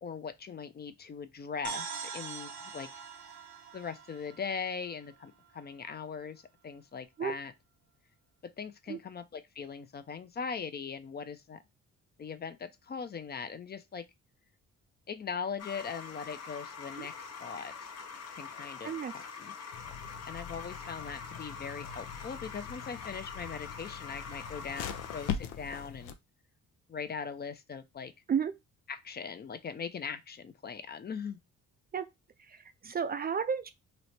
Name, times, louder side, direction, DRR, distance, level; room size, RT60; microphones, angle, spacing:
voice 1, 0.0-2.9 3.7-7.5 8.4-11.6 12.2-14.0 15.1-17.9 18.3-19.5 20.3-26.2 26.9-28.1 28.9-31.4, left 6 dB, 35° left, 0.5 m, -40 dB
sound 1, 1.6-5.3, right 6 dB, 70° right, 0.8 m, -43 dB
sound 2, 15.6-25.3, left 6 dB, 55° left, 0.8 m, -44 dB
sound 3, 19.7-26.1, left 8 dB, 90° left, 0.5 m, -42 dB
voice 2, 32.5-33.7, right 7 dB, 30° right, 0.4 m, -32 dB
3.1 x 2.1 x 4.1 m
cardioid pair, 90°, 30 cm